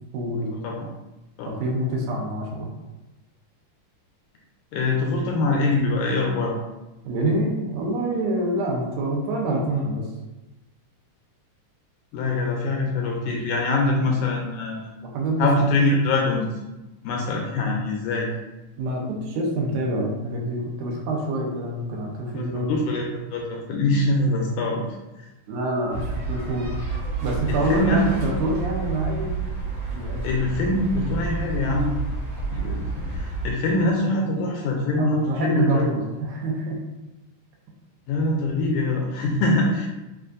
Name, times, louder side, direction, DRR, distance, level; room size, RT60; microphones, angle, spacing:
voice 1, 0.1-0.5 1.6-2.7 7.0-10.1 13.6-13.7 15.0-15.5 18.8-22.8 25.5-26.7 27.2-29.4 29.9-30.2 35.0-36.8, right 1 dB, 75° right, -1 dB, 2.1 m, -26 dB
voice 2, 4.7-6.6 12.1-14.9 15.4-16.4 17.0-18.3 22.3-24.8 25.2-25.3 27.5-28.0 30.2-31.9 32.5-35.9 38.1-39.9, left 2 dB, 80° left, 0 dB, 1.8 m, -24 dB
sound 1, 25.9-33.5, right 4 dB, 55° right, 1.7 m, -29 dB
6.8 x 2.5 x 2.5 m, 1.0 s
omnidirectional pair, 3.8 m